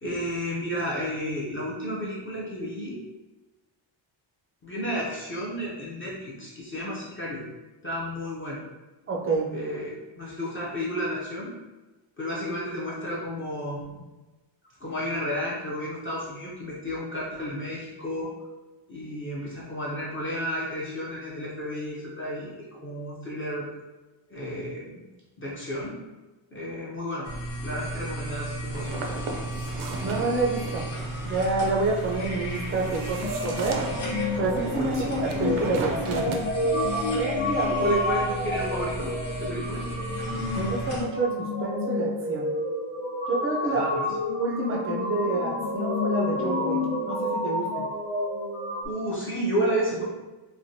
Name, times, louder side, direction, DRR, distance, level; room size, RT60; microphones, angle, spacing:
voice 1, 0.0-3.0 4.6-7.5 7.8-8.6 9.5-11.5 12.2-13.9 14.8-18.3 18.9-23.7 24.3-25.0 25.4-26.0 26.5-27.3 27.6-29.0 34.7-35.2 37.8-39.8 43.7-44.1 48.8-50.0, equal, 25° left, -6 dB, 0.5 m, -32 dB
voice 2, 9.1-9.5 30.0-30.8 31.2-33.8 34.4-36.2 37.1-37.9 40.5-42.5 43.3-43.8 44.4-46.8 47.1-47.7, right 3 dB, 30° right, -2 dB, 0.4 m, -28 dB
sound 1, 27.2-41.0, right 1 dB, 60° left, 1.0 m, -35 dB
sound 2, 28.7-36.4, right 3 dB, 85° right, 0.6 m, -36 dB
sound 3, 33.2-48.9, left 2 dB, 80° left, 0.7 m, -29 dB
3.1 x 2.2 x 2.6 m, 1.1 s
wide cardioid pair, 165°, 48 cm